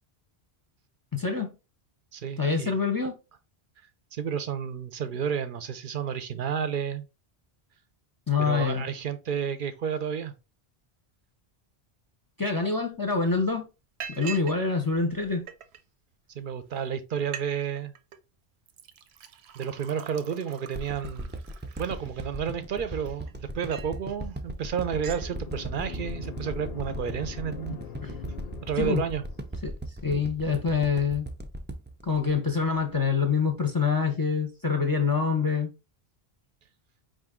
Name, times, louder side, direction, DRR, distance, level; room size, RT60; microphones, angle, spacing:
voice 1, 1.1-1.5 2.4-3.1 8.3-8.9 12.4-13.6 14.1-15.5 28.0-28.1 28.8-29.0 29.6-29.7 30.0-31.3 32.0-35.7, left 5 dB, 25° left, 0.6 m, -26 dB
voice 2, 2.1-2.7 4.1-7.0 8.4-10.3 16.3-17.9 19.5-21.3 21.8-27.8 28.6-29.2, right 7 dB, 60° right, 0.7 m, -31 dB
Liquid, 12.8-12.9 13.3-13.5 14.0-14.6 14.9-15.8 16.5-16.6 16.9-17.0 17.2-17.5 17.8-18.2 18.7-22.5 23.0-24.0 24.4-24.6 24.8-25.3, right 7 dB, 90° right, 0.9 m, -43 dB
sound 1, 20.7-33.1 33.5-33.6, right 1 dB, 20° right, 0.3 m, -37 dB
sound 2, 24.7-29.6, left 8 dB, 70° left, 0.8 m, -43 dB
5.0 x 2.6 x 3.6 m
omnidirectional pair, 1.1 m